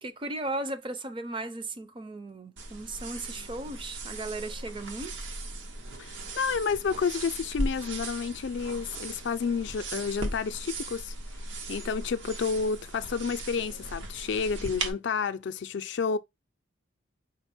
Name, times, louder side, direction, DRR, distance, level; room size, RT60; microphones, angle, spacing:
voice 1, 0.0-5.3, right 2 dB, 25° right, 0.5 m, -36 dB
sound 1, 2.6-14.9, right 2 dB, 80° right, 1.0 m, -38 dB
voice 2, 6.0-11.1 11.7-16.2, left 5 dB, 65° left, 0.4 m, -30 dB
5.1 x 2.0 x 4.2 m
head